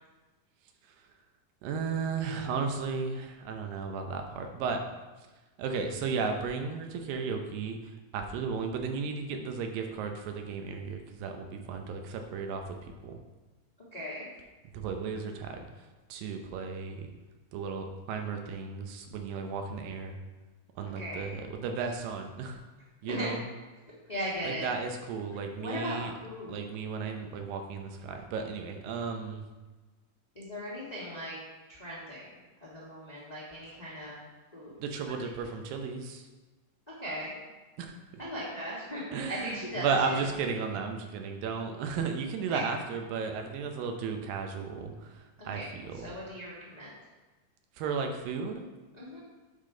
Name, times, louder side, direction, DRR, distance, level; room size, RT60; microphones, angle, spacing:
voice 1, 1.6-4.8 5.6-12.8 13.0-13.2 14.7-15.7 16.1-17.1 17.5-20.2 20.8-22.6 23.0-23.4 24.4-26.1 26.5-29.4 34.8-36.3 37.8-37.9 39.1-46.1 47.8-48.6, right 5 dB, 85° right, 4 dB, 2.5 m, -34 dB
voice 2, 13.9-14.3 20.9-21.3 23.1-23.3 24.1-24.7 25.6-26.6 30.3-31.4 31.7-34.2 34.5-34.8 37.0-37.3 38.2-39.0 39.3-40.3 42.5-42.6 45.5-45.7 45.9-46.9 48.9-49.2, equal, 40° left, -7 dB, 0.5 m, -38 dB
8.3 x 5.8 x 3.8 m, 1.2 s
omnidirectional pair, 3.9 m